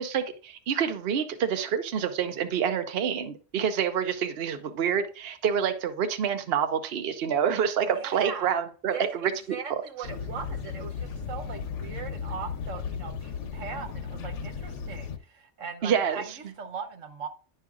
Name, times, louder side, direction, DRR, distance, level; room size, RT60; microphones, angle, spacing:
voice 1, 0.0-9.3 9.7-9.8 15.8-16.2, right 8 dB, 60° right, 0.8 m, -27 dB
voice 2, 7.8-8.6 8.9-17.3, right 6 dB, 75° right, 1.4 m, -39 dB
sound 1, 10.0-15.2, left 6 dB, 70° left, 1.1 m, -35 dB
10.5 x 5.5 x 2.4 m
omnidirectional pair, 1.3 m